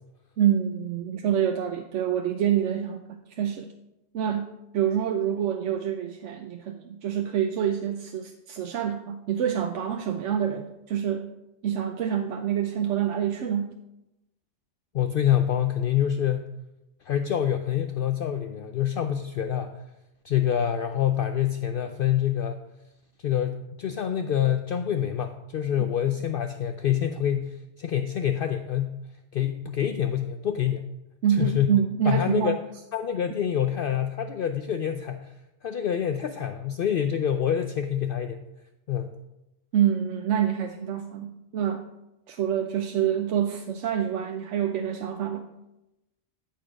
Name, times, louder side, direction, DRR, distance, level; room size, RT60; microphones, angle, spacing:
voice 1, 0.4-3.7 4.1-11.3 11.6-13.7 25.8-25.9 31.2-32.5 39.7-41.8 42.3-45.4, right 9 dB, 80° right, 5 dB, 1.0 m, -27 dB
voice 2, 14.9-16.5 17.1-19.7 20.2-22.6 23.2-29.0 29.3-30.9 31.4-31.7 32.1-32.6 32.9-35.3 35.6-38.4 38.9-39.2, left 10 dB, 60° left, 8 dB, 0.7 m, -26 dB
13.5 x 4.6 x 6.2 m, 0.93 s
omnidirectional pair, 1.2 m